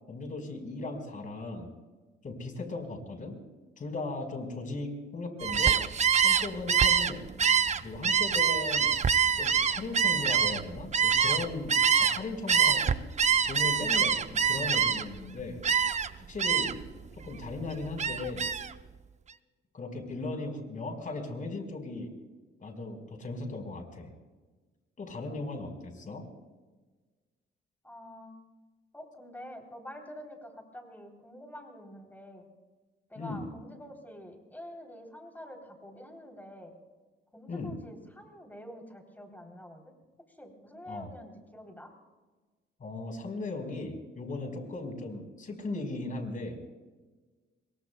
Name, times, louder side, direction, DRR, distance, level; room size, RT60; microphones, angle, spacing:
voice 1, 0.1-1.7 2.2-3.4 3.8-5.8 6.2-7.3 7.8-13.0 13.4-15.6 16.2-16.8 17.1-18.5 19.7-22.1 22.6-24.1 25.0-26.3 33.1-33.5 37.5-37.7 40.9-41.1 42.8-46.6, left 2 dB, 40° left, 4 dB, 4.6 m, -37 dB
Gull seagull, 5.4-12.2 12.5-15.2 15.6-16.1 16.4-16.9 17.3-18.7, right 7 dB, 35° right, 0.7 m, -25 dB
voice 2, 27.8-28.4 28.9-32.5 33.1-36.8 37.3-39.9 40.3-41.9, equal, 10° left, 2 dB, 3.4 m, -47 dB
28.0 x 22.5 x 2.3 m, 1.3 s
cardioid pair, 90°, 20 cm